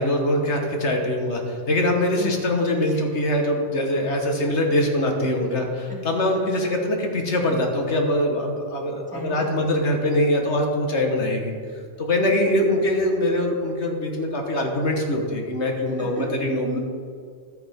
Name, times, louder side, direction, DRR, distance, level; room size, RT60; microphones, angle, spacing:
voice 1, 0.0-11.5 12.0-16.6, left 1 dB, 65° left, 2 dB, 1.7 m, -23 dB
voice 2, 5.9-6.2 6.6-6.7 9.1-9.7 12.3-12.4 12.7-12.8 15.9-16.3 16.6-16.8, right 1 dB, 5° right, -5 dB, 2.4 m, -35 dB
12.5 x 9.4 x 3.6 m, 2.2 s
omnidirectional pair, 1.2 m